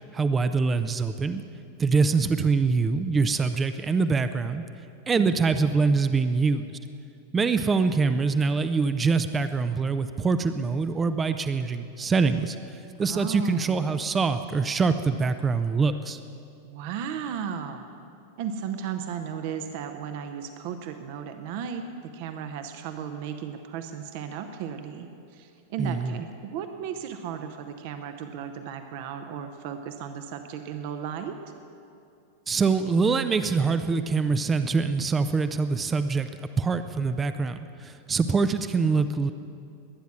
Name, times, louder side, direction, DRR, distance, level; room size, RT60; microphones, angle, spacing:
voice 1, 0.1-1.4 1.8-4.6 5.1-6.6 7.3-16.2 25.8-26.2 32.5-36.3 36.6-39.3, right 4 dB, 20° right, 10 dB, 0.5 m, -24 dB
voice 2, 13.0-13.8 16.6-17.9 18.4-21.9 22.1-31.4, right 8 dB, 50° right, 7 dB, 0.8 m, -35 dB
21.5 x 9.4 x 6.0 m, 2.5 s
figure-of-eight pair, 90°, 0 cm